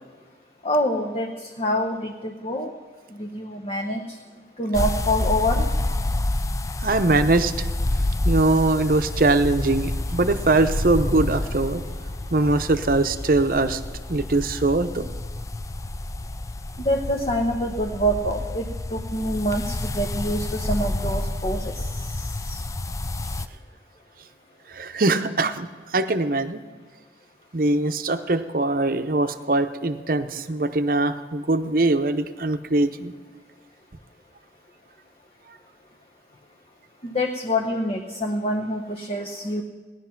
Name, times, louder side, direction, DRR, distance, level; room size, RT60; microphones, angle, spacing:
voice 1, 0.6-2.7 3.1-4.0 4.6-5.7 16.8-18.7 18.9-21.8 22.5-22.6 37.0-39.6, equal, 35° left, 1 dB, 0.8 m, -26 dB
sound 1, 4.7-23.5, left 1 dB, 20° left, 0.4 m, -29 dB
voice 2, 6.8-7.7 8.2-11.8 12.3-13.8 14.1-15.1 24.7-26.6 27.5-33.1, right 2 dB, 50° right, 9 dB, 0.7 m, -22 dB
17.5 x 10.5 x 5.9 m, 1.4 s
head